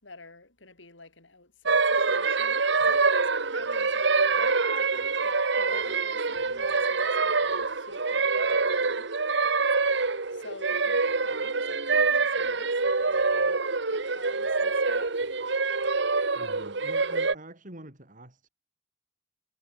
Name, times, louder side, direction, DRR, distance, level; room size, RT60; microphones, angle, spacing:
voice 1, 0.0-9.1 10.3-13.6 13.9-15.4, left 3 dB, 85° left, 6.4 m, -49 dB
sound 1, 1.7-17.3, right 4 dB, 70° right, 1.7 m, -25 dB
voice 2, 16.3-18.5, right 1 dB, 45° right, 5.1 m, -46 dB
head